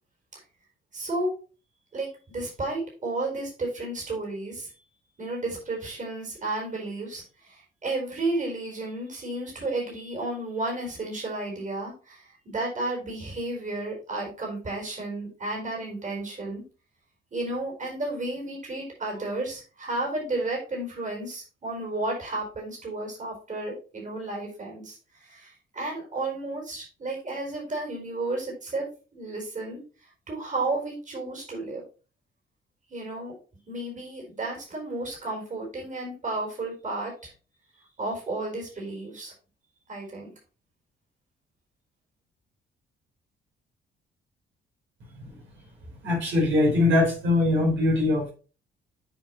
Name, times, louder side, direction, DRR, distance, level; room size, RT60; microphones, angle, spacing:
voice 1, 0.9-1.3 1.9-4.7 5.2-16.6 17.3-28.9 29.1-31.8 32.9-33.3 33.7-37.3 37.8-39.3 39.9-40.3, right 2 dB, 40° right, -1 dB, 4.6 m, -32 dB
voice 2, 46.0-48.3, left 2 dB, 70° right, -2 dB, 4.4 m, -22 dB
8.8 x 5.4 x 3.1 m, 0.35 s
cardioid pair, 90°, 20 cm